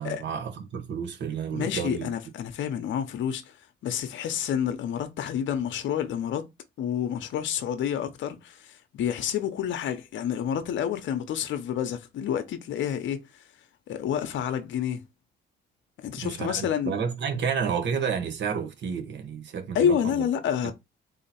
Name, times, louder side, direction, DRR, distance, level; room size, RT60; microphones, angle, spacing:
voice 1, 0.0-2.1 16.2-20.2 20.6-20.7, right 6 dB, 65° right, 1.2 m, -31 dB
voice 2, 1.5-3.6 3.8-6.5 6.8-13.2 13.9-15.0 16.0-16.9 19.7-20.7, left 9 dB, 70° left, 0.7 m, -29 dB
3.8 x 2.8 x 4.2 m
cardioid pair, 90°, 20 cm